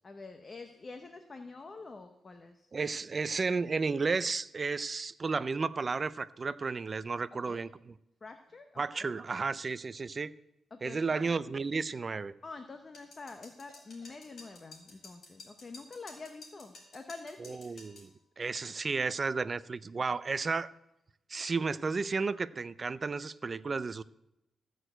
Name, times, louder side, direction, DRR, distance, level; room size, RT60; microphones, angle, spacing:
voice 1, 0.0-2.7 7.5-7.6 8.2-9.1 10.7-11.4 12.4-17.8, left 3 dB, 25° left, 0.8 m, -47 dB
voice 2, 2.7-7.9 8.8-10.3 10.8-12.3 17.4-18.1 18.4-20.7 21.3-24.0, right 4 dB, 30° right, 0.4 m, -33 dB
sound 1, 12.9-18.1, left 3 dB, 50° left, 4.8 m, -52 dB
14.5 x 6.3 x 7.8 m
wide cardioid pair, 150°, 0 cm